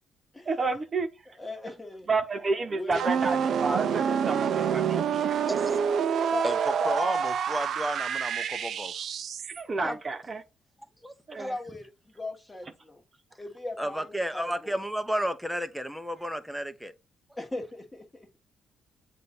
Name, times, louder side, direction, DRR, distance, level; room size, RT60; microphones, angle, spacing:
voice 1, 0.5-1.1 2.1-5.5 9.4-10.4 11.3-11.6, right 3 dB, 35° right, 1.1 m, -30 dB
voice 2, 1.4-2.1 2.7-3.0 6.3-6.4 6.8-7.2 9.8-9.9 11.4-11.9 12.2-13.0 13.4-14.0 14.3-14.7 17.4-18.0, left 2 dB, 15° left, 1.9 m, -37 dB
sound 1, 2.9-9.6, right 7 dB, 65° right, 0.6 m, -27 dB
voice 3, 6.4-8.9 9.8-10.0 11.0-11.5 13.8-16.9, equal, ahead, 1.0 m, -32 dB
7.6 x 2.7 x 5.4 m
cardioid pair, 90°, 0 cm